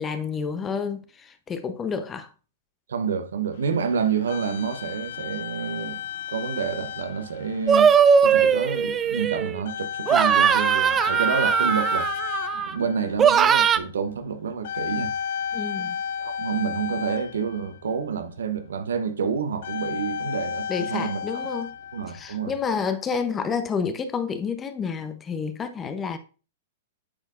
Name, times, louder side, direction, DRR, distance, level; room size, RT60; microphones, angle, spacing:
voice 1, 0.0-2.3 15.5-16.0 20.7-21.7 22.1-26.2, left 6 dB, 20° left, 0.7 m, -29 dB
voice 2, 2.9-6.0 6.3-8.0 8.2-12.1 12.5-15.1 15.8-15.9 16.2-21.2 21.9-22.5, right 6 dB, 85° right, 0.8 m, -28 dB
sound 1, 3.5-18.0 19.5-22.8, left 8 dB, 65° left, 0.5 m, -34 dB
sound 2, 7.7-9.6 10.1-12.7 13.2-13.8, right 7 dB, 20° right, 0.4 m, -19 dB
8.6 x 4.5 x 2.5 m
hypercardioid pair, 130°, 0 cm